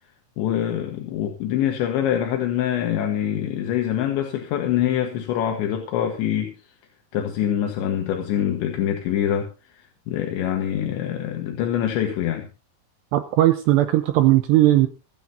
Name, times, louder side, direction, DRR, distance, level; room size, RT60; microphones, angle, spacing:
voice 1, 0.4-6.5 7.1-12.5, left 10 dB, 75° left, 3.6 m, -25 dB
voice 2, 13.1-14.9, right 15 dB, 80° right, 2.7 m, -17 dB
25.5 x 9.8 x 2.8 m
omnidirectional pair, 5.5 m